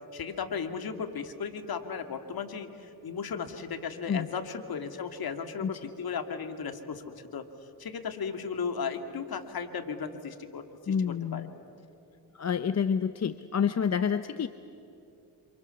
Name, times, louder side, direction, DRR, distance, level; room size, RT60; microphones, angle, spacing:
voice 1, 0.1-7.0 7.3-7.5 7.8-11.5, left 6 dB, 55° left, 7 dB, 2.5 m, -36 dB
voice 2, 10.9-11.5 12.3-14.5, left 7 dB, 40° left, 12 dB, 0.8 m, -28 dB
27.5 x 27.5 x 7.1 m, 3.0 s
cardioid pair, 80°, 43 cm